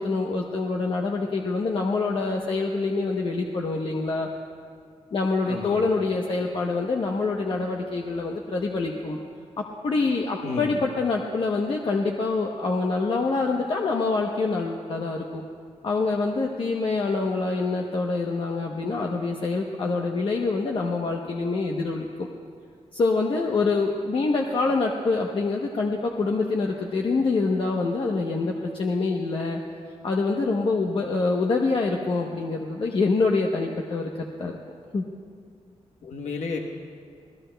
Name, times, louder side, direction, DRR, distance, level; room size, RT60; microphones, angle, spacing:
voice 1, 0.0-4.3 5.1-9.2 9.6-15.4 15.8-22.3 22.9-29.6 30.0-34.1 34.4-34.6 34.9-35.0, left 3 dB, 50° left, 0 dB, 0.9 m, -25 dB
voice 2, 5.4-5.9 10.4-10.8 36.0-36.6, left 4 dB, 80° left, 2 dB, 1.1 m, -32 dB
27.5 x 17.5 x 2.2 m, 2.2 s
wide cardioid pair, 145°, 12 cm